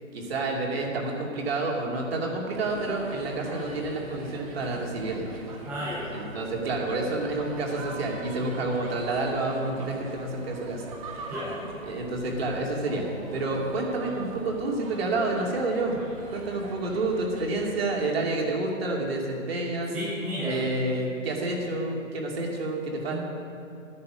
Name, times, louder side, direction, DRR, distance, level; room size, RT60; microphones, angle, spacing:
voice 1, 0.1-5.3 6.1-10.8 11.9-13.0 13.3-16.0 16.3-19.9 20.4-23.2, right 2 dB, 50° right, -1 dB, 2.6 m, -29 dB
sound 1, 2.5-17.9, right 2 dB, 25° right, 1.4 m, -42 dB
voice 2, 5.6-6.0 11.3-11.5 19.9-20.5 23.1-23.2, equal, 5° right, -9 dB, 0.6 m, -32 dB
12.5 x 9.8 x 6.2 m, 2.6 s
figure-of-eight pair, 145°, 40 cm